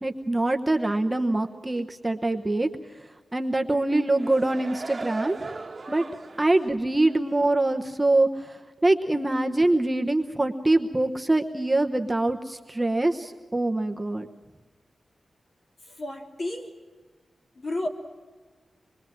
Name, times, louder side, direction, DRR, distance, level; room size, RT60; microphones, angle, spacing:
voice 1, 0.0-2.7 3.3-5.4 5.9-6.0 6.4-14.3, right 2 dB, 15° right, 4 dB, 1.1 m, -24 dB
sound 1, 3.9-6.6 7.0-7.2, right 3 dB, 35° right, 1.4 m, -38 dB
voice 2, 15.8-16.8 17.5-17.9, left 1 dB, 45° left, 1 dB, 3.4 m, -32 dB
26.0 x 22.5 x 7.7 m, 1.3 s
wide cardioid pair, 150°, 0 cm